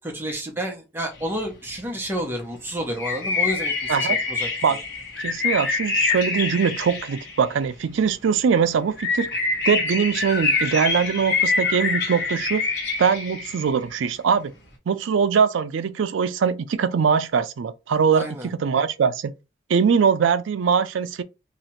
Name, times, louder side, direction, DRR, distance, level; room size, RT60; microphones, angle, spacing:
voice 1, 0.1-4.8 18.1-18.5, equal, 10° right, 0.8 m, -30 dB
sound 1, 3.0-7.7 9.0-13.7, left 4 dB, 60° left, 1.2 m, -25 dB
voice 2, 5.2-9.3 9.7-12.6 13.0-14.5 14.9-19.3 19.7-21.2, right 6 dB, 80° right, 0.4 m, -22 dB
2.9 x 2.4 x 4.2 m
head